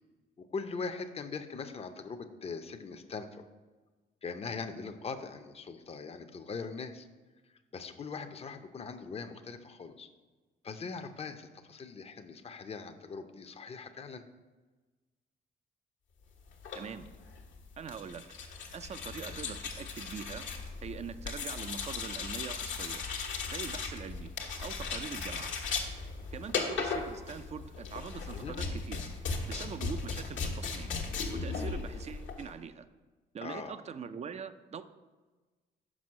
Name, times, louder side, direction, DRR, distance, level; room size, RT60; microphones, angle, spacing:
voice 1, 0.4-3.5 4.2-7.1 7.7-10.1 10.6-14.2 28.3-28.6 33.4-33.8, left 4 dB, 30° left, 8 dB, 0.6 m, -41 dB
sound 1, 16.5-32.5, left 4 dB, 75° left, 1.3 m, -37 dB
voice 2, 16.7-17.1 17.8-18.2 18.7-20.5 20.8-23.0 23.5-24.3 24.6-25.5 26.3-29.0 29.5-31.0 31.4-32.9 33.3-34.8, right 6 dB, 35° right, 12 dB, 0.4 m, -43 dB
6.2 x 5.2 x 6.3 m, 1.3 s
cardioid pair, 90°, 20 cm